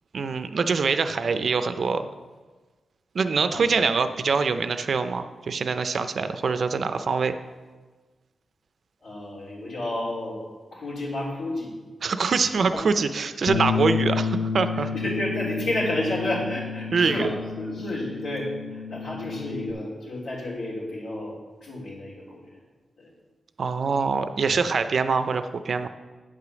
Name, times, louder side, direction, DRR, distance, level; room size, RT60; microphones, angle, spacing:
voice 1, 0.1-2.1 3.1-7.3 12.0-14.9 16.9-17.2 23.6-25.9, right 5 dB, 55° right, 10 dB, 0.5 m, -24 dB
voice 2, 3.5-3.8 9.0-10.4 10.7-11.7 12.7-12.8 14.7-21.3 21.6-22.5 23.0-23.1, left 1 dB, 90° left, -5 dB, 3.3 m, -31 dB
Bass guitar, 13.5-19.7, left 6 dB, 70° left, 0.6 m, -30 dB
8.9 x 5.0 x 6.9 m, 1.3 s
wide cardioid pair, 170°, 0 cm